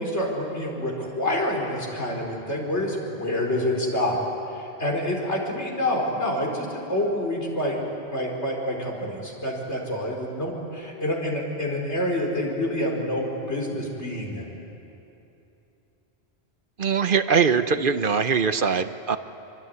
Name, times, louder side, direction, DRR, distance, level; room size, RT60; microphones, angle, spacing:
voice 1, 0.0-4.2 4.6-7.8 8.1-14.5, left 1 dB, 85° left, -1 dB, 5.1 m, -27 dB
voice 2, 16.8-19.2, right 6 dB, 55° right, 11 dB, 1.0 m, -22 dB
25.0 x 24.5 x 9.5 m, 2.9 s
omnidirectional pair, 1.1 m